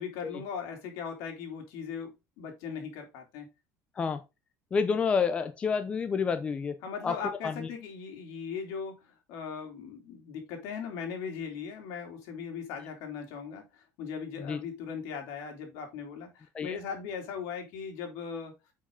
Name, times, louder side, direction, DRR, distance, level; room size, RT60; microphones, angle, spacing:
voice 1, 0.0-3.5 6.8-18.5, left 6 dB, 70° left, 2.9 m, -39 dB
voice 2, 4.7-6.8 7.0-7.2 7.4-7.5 14.4-14.6 16.5-16.8, left 5 dB, 20° left, 0.5 m, -29 dB
8.4 x 4.9 x 3.7 m
cardioid pair, 165°, 6 cm